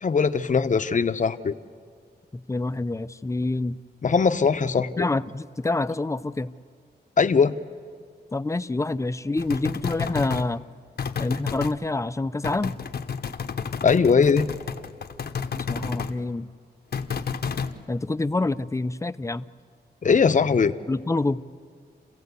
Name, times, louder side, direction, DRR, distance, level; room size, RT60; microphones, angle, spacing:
voice 1, 0.0-1.5 4.0-5.1 7.2-7.5 13.8-14.5 20.0-20.7, left 5 dB, 45° left, 9 dB, 0.8 m, -20 dB
voice 2, 2.5-3.8 5.0-6.5 8.3-10.6 11.2-12.7 15.6-16.5 17.9-19.4 20.9-21.4, left 2 dB, 15° left, 12 dB, 0.5 m, -27 dB
sound 1, 9.4-10.5 11.0-11.7 12.4-16.1 16.9-17.7, left 6 dB, 65° left, 0.9 m, -31 dB
28.5 x 15.5 x 8.2 m, 2.1 s
wide cardioid pair, 90°, 18 cm